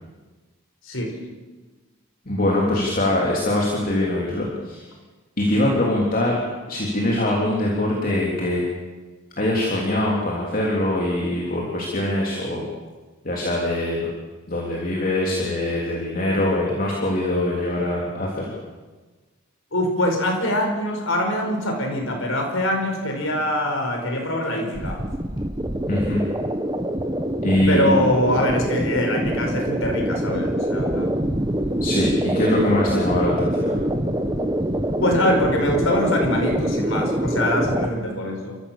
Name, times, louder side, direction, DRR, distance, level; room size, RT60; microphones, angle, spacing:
voice 1, 2.3-4.9 5.4-6.4 6.7-8.6 9.4-12.6 13.2-14.1 14.5-18.6 25.9-26.2 27.4-28.0 31.8-33.8, left 1 dB, 40° left, -3 dB, 3.5 m, -23 dB
voice 2, 19.7-25.0 27.7-31.1 35.0-38.6, left 1 dB, 65° left, 2 dB, 5.1 m, -23 dB
sound 1, 24.7-37.9, right 1 dB, 20° right, 1.3 m, -25 dB
29.5 x 15.0 x 7.5 m, 1.3 s
head